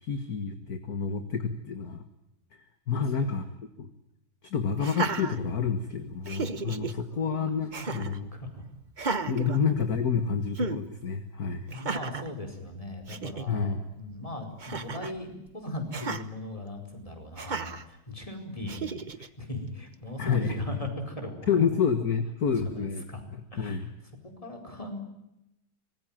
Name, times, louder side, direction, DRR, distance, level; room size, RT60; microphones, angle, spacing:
voice 1, 0.0-2.0 2.9-3.4 3.8-3.9 4.4-8.3 9.3-11.7 13.5-13.9 20.2-20.6 21.5-23.0 23.3-23.9, left 6 dB, 50° left, 8 dB, 1.9 m, -29 dB
voice 2, 2.9-3.4 7.1-7.4 8.0-8.6 11.7-21.5 23.1-23.2 23.5-23.9 24.4-25.0, left 2 dB, 15° left, 4 dB, 4.8 m, -38 dB
Laughter, 4.8-5.9 6.2-6.9 7.7-8.2 8.9-10.2 10.5-10.8 11.7-12.3 12.8-12.9 13.1-13.5 14.6-15.2 15.9-16.2 17.4-17.8 18.7-19.3, right 4 dB, 30° right, 0.9 m, -34 dB
25.0 x 20.5 x 9.0 m, 0.86 s
omnidirectional pair, 2.2 m